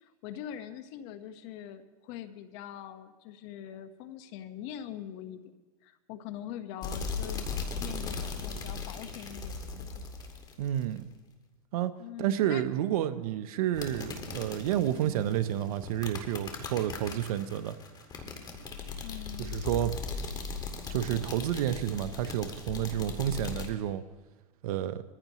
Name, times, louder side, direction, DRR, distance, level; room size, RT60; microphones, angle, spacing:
voice 1, 0.0-5.5 5.8-7.5 7.8-10.1 12.0-12.6 14.9-15.3 19.0-19.6, left 10 dB, 50° left, 10 dB, 1.2 m, -43 dB
sound 1, 6.8-11.0 13.7-23.7, left 4 dB, 20° left, 2.0 m, -38 dB
voice 2, 10.6-11.1 11.7-11.9 12.2-17.8 19.4-20.0 20.9-24.0 24.6-25.0, right 11 dB, 70° right, 11 dB, 0.8 m, -30 dB
22.0 x 15.0 x 3.1 m, 1.3 s
supercardioid pair, 130°, 19 cm